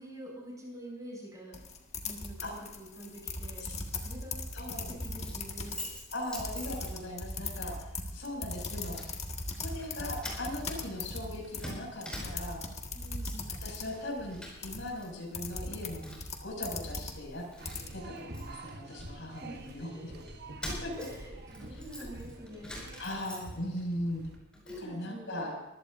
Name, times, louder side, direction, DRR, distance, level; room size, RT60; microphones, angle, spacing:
voice 1, 0.0-1.6 2.0-2.4 2.7-3.6 3.9-4.4 4.7-5.9 12.9-13.6 19.4-20.3 21.0-22.9 24.6-25.4, equal, 20° right, -2 dB, 6.8 m, -46 dB
sound 1, 1.5-17.9, left 3 dB, 35° left, 1.8 m, -39 dB
voice 2, 4.5-4.9 6.1-9.0 9.6-12.6 13.6-16.0 16.4-17.4 17.9-19.9 20.6-20.9 23.0-24.2 24.8-25.6, left 1 dB, 70° left, 0 dB, 6.3 m, -39 dB
Keys jangling, 5.0-7.3 7.7-7.9 8.5-9.1 9.4-9.9 10.2-12.7 13.0-13.5 13.8-15.0 15.3-16.4 16.9-17.0 17.3-19.7 20.3-23.8 24.2-24.9, left 1 dB, 5° left, 5.3 m, -45 dB
sound 2, 17.6-24.4, right 2 dB, 55° right, 1.1 m, -47 dB
24.0 x 16.0 x 2.6 m, 0.99 s
head